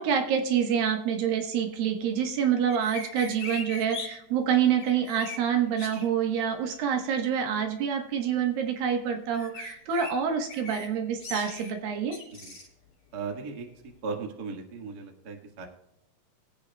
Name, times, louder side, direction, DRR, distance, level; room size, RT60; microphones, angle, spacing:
voice 1, 0.0-12.2, right 8 dB, 80° right, 4 dB, 3.1 m, -27 dB
sound 1, 2.7-4.1 4.8-5.4 5.8-6.1 9.3-10.1 10.5-10.9 11.2-11.7 12.1-12.7, left 3 dB, 35° left, 6.1 m, -39 dB
voice 2, 13.1-13.7 14.0-15.7, right 4 dB, 40° right, 2 dB, 1.5 m, -37 dB
22.5 x 8.5 x 2.3 m, 0.85 s
omnidirectional pair, 4.1 m